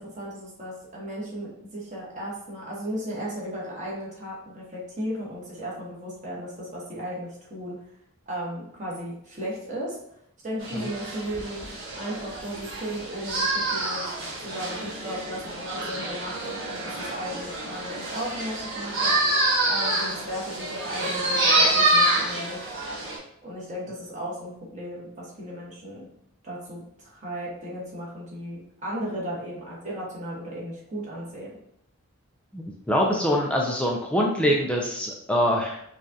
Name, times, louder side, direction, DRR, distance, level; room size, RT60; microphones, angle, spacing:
voice 1, 0.0-7.8 8.3-10.0 10.4-14.0 14.4-19.2 19.7-22.6 23.4-26.1 26.4-31.5, equal, 35° right, -5 dB, 1.3 m, -35 dB
sound 1, 10.6-23.2, right 2 dB, 60° right, 1.3 m, -27 dB
voice 2, 32.5-35.8, equal, 5° left, -1 dB, 0.4 m, -24 dB
5.1 x 2.4 x 2.7 m, 0.74 s
head